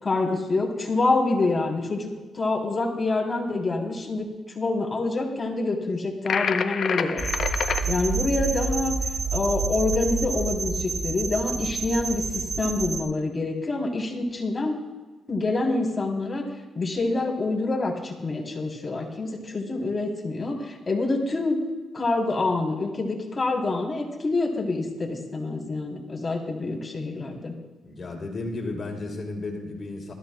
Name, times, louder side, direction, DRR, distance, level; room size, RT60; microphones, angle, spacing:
voice 1, 0.0-4.3 4.5-7.2 7.5-8.9 9.3-14.8 15.3-16.5 16.7-21.6 21.9-27.6, left 3 dB, 30° left, -1 dB, 3.2 m, -26 dB
sound 1, 6.3-7.8, left 6 dB, 60° left, 0.7 m, -27 dB
sound 2, 7.2-13.0, right 4 dB, 25° right, 1.3 m, -28 dB
voice 2, 27.8-30.1, left 2 dB, 45° left, 0 dB, 3.2 m, -33 dB
21.0 x 14.0 x 2.3 m, 1.3 s
cardioid pair, 85°, 0 cm